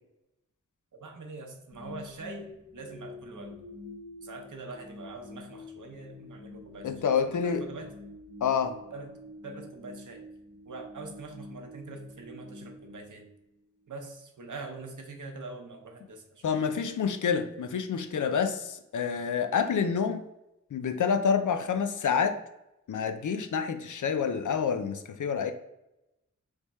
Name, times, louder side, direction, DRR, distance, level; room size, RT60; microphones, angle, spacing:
voice 1, 0.9-3.6 4.2-7.9 8.9-9.1 9.4-10.2 10.7-13.2 13.9-16.7, right 3 dB, 75° right, 3 dB, 0.8 m, -43 dB
sound 1, 1.7-13.9, left 2 dB, 35° left, 0.9 m, -47 dB
voice 2, 6.8-7.6 8.4-8.8 16.4-20.2 20.7-22.4 22.9-25.5, left 6 dB, 75° left, 9 dB, 0.5 m, -28 dB
3.5 x 3.2 x 4.1 m, 0.90 s
wide cardioid pair, 55°, 31 cm